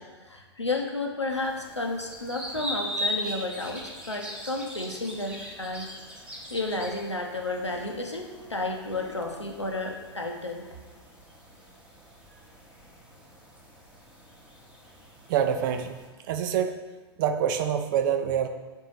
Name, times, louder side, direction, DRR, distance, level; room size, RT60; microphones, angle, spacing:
voice 1, 0.0-5.9 6.5-10.7, left 2 dB, 90° left, 2 dB, 0.8 m, -32 dB
sound 1, 1.3-16.1, equal, 5° right, 1.0 m, -40 dB
voice 2, 15.3-16.0 16.3-16.8 17.2-18.5, right 8 dB, 45° right, 8 dB, 0.5 m, -26 dB
4.5 x 3.8 x 5.6 m, 1.3 s
figure-of-eight pair, 100°, 14 cm